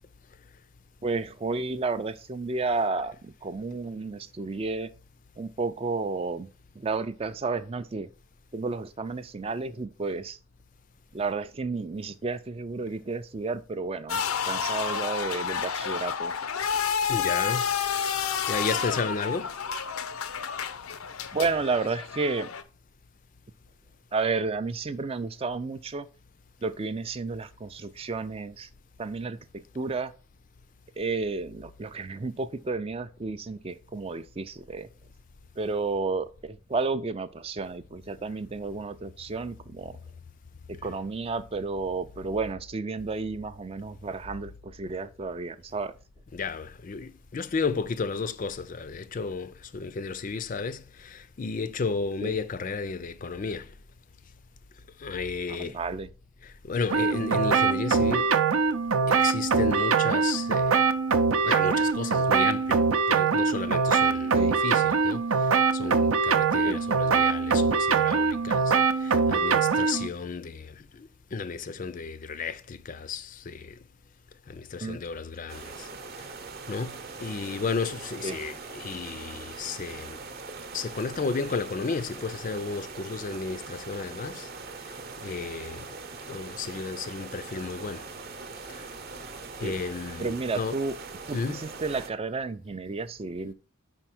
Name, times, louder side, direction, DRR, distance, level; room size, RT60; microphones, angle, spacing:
voice 1, 1.0-4.9 5.4-6.5 6.8-8.1 8.5-10.4 11.1-16.4 21.3-22.5 24.1-26.1 26.6-28.7 29.0-30.1 31.0-34.9 35.6-40.0 40.7-45.9 52.2-52.4 55.6-56.1 64.3-64.6 66.6-66.8 74.8-75.0 78.2-78.4 89.6-89.8 90.2-90.9 91.3-93.5, right 3 dB, 25° right, 0.3 m, -32 dB
sound 1, 14.1-22.6, left 7 dB, 85° left, 0.6 m, -30 dB
voice 2, 17.1-17.7 18.5-19.5 46.3-53.7 55.0-55.8 56.4-58.3 59.1-60.8 61.4-73.8 74.5-75.9 76.1-76.3 76.7-80.2 80.7-84.5 84.9-85.9 86.3-88.1 88.7-88.9 89.6-90.8 91.3-91.6, left 4 dB, 40° left, 0.4 m, -33 dB
sound 2, 56.9-70.1, right 5 dB, 80° right, 0.6 m, -23 dB
sound 3, 75.5-92.1, right 4 dB, 45° right, 0.8 m, -41 dB
5.4 x 4.5 x 5.9 m
head